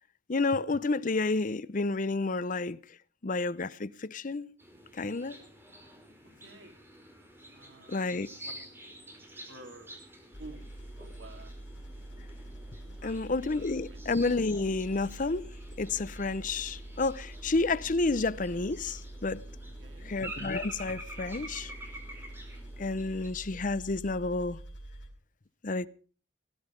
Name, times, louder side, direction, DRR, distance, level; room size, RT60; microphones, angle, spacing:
voice 1, 0.3-2.8 3.2-4.5 4.9-5.4 7.9-8.3 13.0-15.5 15.8-19.4 20.0-21.7 22.8-24.6 25.6-25.9, left 3 dB, 45° left, 0.7 m, -30 dB
sound 1, 4.6-23.3, right 1 dB, 10° right, 4.9 m, -48 dB
voice 2, 6.4-6.7 7.5-8.5 9.5-9.9 10.4-10.7 11.0-11.5 12.9-13.3 13.9-14.0 19.8-20.1, right 2 dB, 85° right, 4.1 m, -50 dB
sound 2, 10.3-25.1, right 1 dB, 80° left, 4.7 m, -45 dB
18.5 x 12.0 x 5.2 m
head